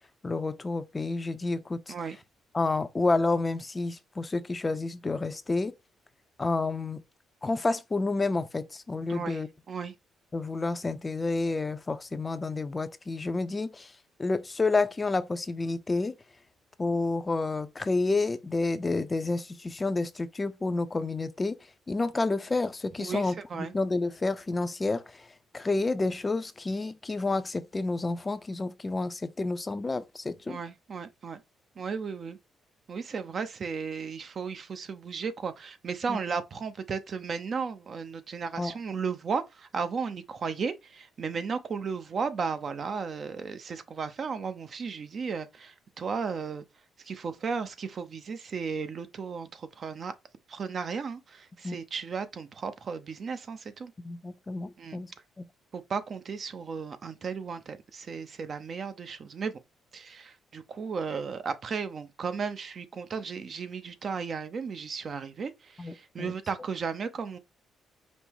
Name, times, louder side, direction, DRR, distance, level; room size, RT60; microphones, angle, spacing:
voice 1, 0.2-1.9 2.5-5.7 6.4-7.0 7.4-9.5 10.3-13.9 14.2-16.1 16.8-21.6 21.9-25.3 25.5-30.6 36.1-36.2 38.6-38.7 51.6-51.8 54.0-55.1 65.8-66.3, left 3 dB, 25° left, 0.5 m, -29 dB
voice 2, 9.1-9.4 9.7-9.9 23.0-23.7 30.5-31.4 31.8-32.4 32.9-46.6 47.0-50.1 50.5-53.9 54.8-55.0 55.7-59.6 59.9-67.4, right 5 dB, 50° right, 0.7 m, -35 dB
5.3 x 2.1 x 4.6 m
cardioid pair, 90°, 0 cm